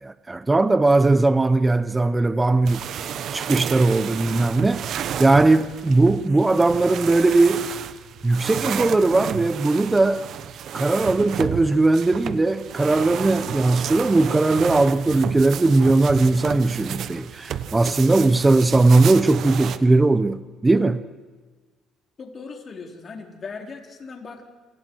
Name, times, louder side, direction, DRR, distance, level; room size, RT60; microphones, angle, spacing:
voice 1, 0.0-2.9 3.3-4.8 5.2-7.7 8.2-10.2 10.7-21.0, right 2 dB, 15° right, 0.8 m, -19 dB
sound 1, 2.7-19.8, right 9 dB, 60° right, 1.1 m, -32 dB
voice 2, 22.2-24.5, left 4 dB, 35° left, 3.7 m, -38 dB
28.5 x 26.5 x 4.7 m
cardioid pair, 120°, 0 cm